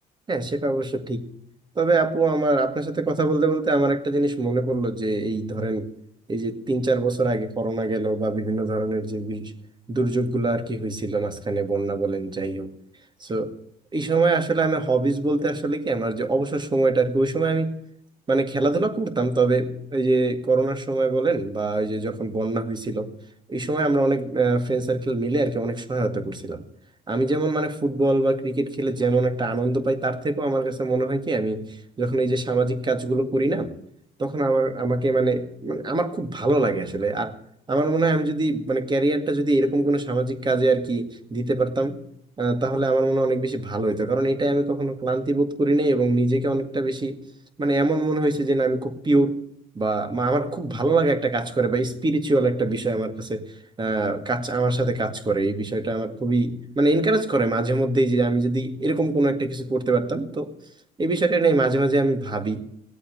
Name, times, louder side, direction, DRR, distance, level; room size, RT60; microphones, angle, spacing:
voice 1, 0.3-1.3 1.8-5.9 6.3-9.5 9.9-12.7 13.2-13.6 13.9-17.7 18.3-23.1 23.5-26.6 27.1-33.7 34.2-37.4 37.7-42.0 42.4-47.2 47.6-49.4 49.8-53.5 53.8-60.5 61.0-62.6, right 2 dB, 25° right, 7 dB, 2.1 m, -23 dB
17.5 x 8.4 x 9.3 m, 0.73 s
cardioid pair, 110°, 17 cm